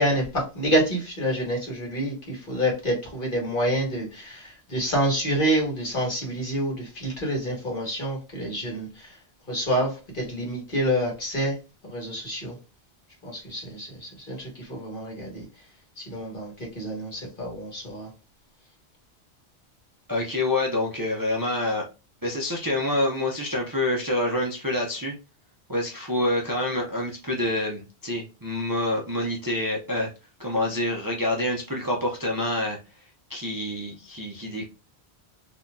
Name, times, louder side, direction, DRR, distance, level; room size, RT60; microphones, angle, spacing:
voice 1, 0.0-9.2 9.5-11.6 11.8-12.5 13.2-15.5 16.0-18.1, right 1 dB, 55° left, 1.7 m, -27 dB
voice 2, 20.1-21.9 22.2-25.1 25.7-30.1 30.4-32.8 33.3-34.7, left 1 dB, 25° right, 0.6 m, -27 dB
4.1 x 2.8 x 2.3 m
omnidirectional pair, 1.1 m